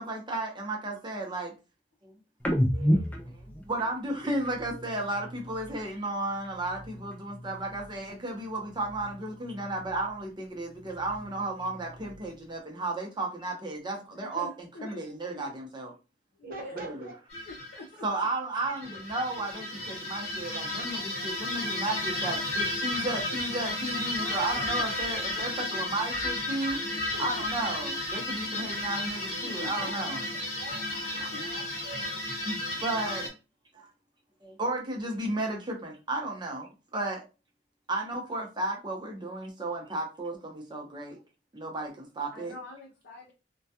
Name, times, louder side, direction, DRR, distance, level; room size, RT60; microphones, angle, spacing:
voice 1, 0.0-1.5 2.0-2.1 2.7-15.9 16.8-17.1 18.0-26.8 27.2-30.2 31.2-31.3 32.4-33.3 33.7-33.9 34.4-37.2 37.9-41.2 41.5-42.5, right 2 dB, 25° right, 0 dB, 0.7 m, -34 dB
sound 1, 2.4-6.0 6.3-8.1 8.4-10.3 10.6-12.5, equal, 10° left, 0.3 m, -34 dB
voice 2, 14.0-15.5 16.3-17.0 17.5-18.1 23.9-24.9 25.3-25.9 26.9-27.4 28.6-28.7 29.4-29.9 31.3-31.5 42.3-43.3, left 2 dB, 70° left, 0 dB, 0.5 m, -46 dB
voice 3, 16.4-17.2 29.8-30.0 30.5-32.2 32.7-33.2, right 2 dB, 55° right, 1 dB, 0.9 m, -44 dB
sound 2, 17.3-17.8 18.7-33.3, left 1 dB, 40° left, 1.0 m, -33 dB
2.2 x 2.2 x 2.7 m, 0.30 s
head